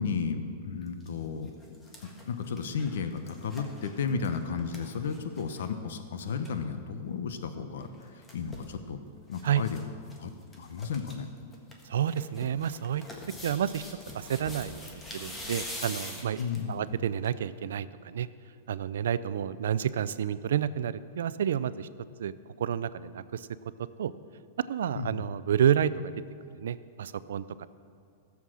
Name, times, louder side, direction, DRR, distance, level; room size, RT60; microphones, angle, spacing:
voice 1, 0.0-1.5 2.0-9.0 9.3-9.8 10.2-11.3 16.4-16.8 24.9-25.2, left 5 dB, 85° left, 9 dB, 1.0 m, -33 dB
sound 1, 0.8-1.1 1.5-5.7 6.0-6.1 6.3-6.5 7.8-8.7 9.3-9.8 10.1-10.2 10.5-11.1 11.5-16.7 17.2-17.3, left 1 dB, 15° left, 1.4 m, -44 dB
voice 2, 11.9-13.0 13.4-13.8 14.1-16.4 16.7-18.3 18.7-21.9 22.2-22.3 22.6-23.5 24.0-24.1 24.7-26.1 26.5-27.7, right 9 dB, 90° right, 16 dB, 0.5 m, -29 dB
15.0 x 7.2 x 6.3 m, 2.4 s
supercardioid pair, 160°, 0 cm